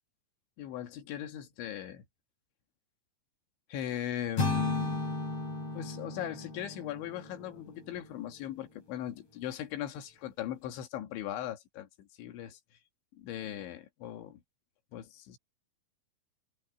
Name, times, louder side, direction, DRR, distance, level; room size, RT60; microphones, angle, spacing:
voice 1, 0.6-2.0 3.7-5.1 5.7-12.6 13.1-14.4 14.9-15.4, left 11 dB, 80° left, 4.1 m, -39 dB
sound 1, 4.4-8.4, left 2 dB, 35° left, 6.6 m, -35 dB
omnidirectional pair, 5.3 m